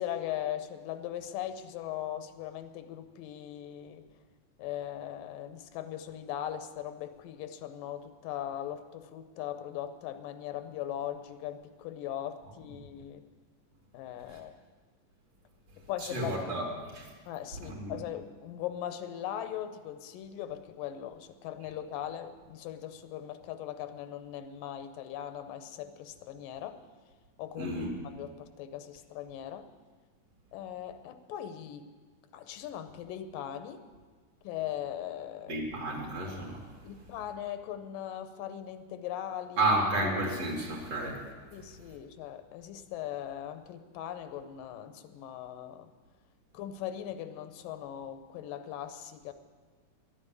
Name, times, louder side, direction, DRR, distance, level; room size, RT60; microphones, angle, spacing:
voice 1, 0.0-4.0 4.6-13.2 13.9-14.5 15.8-16.4 17.3-26.8 27.4-27.8 28.1-29.7 30.5-31.9 32.3-33.9 34.4-35.6 36.8-39.7 41.5-45.9 46.5-49.3, left 11 dB, 85° left, 10 dB, 2.4 m, -39 dB
voice 2, 16.0-17.1 17.6-18.0 27.6-27.9 35.5-36.7 39.6-41.3, right 1 dB, 50° right, -1 dB, 3.1 m, -31 dB
12.0 x 8.9 x 9.5 m, 1.4 s
omnidirectional pair, 3.8 m